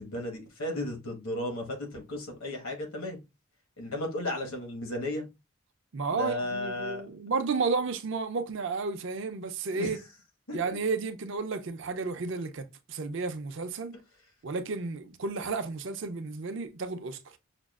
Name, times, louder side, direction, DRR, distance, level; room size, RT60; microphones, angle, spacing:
voice 1, 0.0-3.2 3.8-5.3 6.2-7.1 9.7-10.0 10.5-10.8, left 1 dB, 75° left, 1.4 m, -34 dB
voice 2, 5.9-10.0 10.5-14.0 14.4-17.2, right 4 dB, 55° right, 0.5 m, -32 dB
5.9 x 2.3 x 2.4 m
head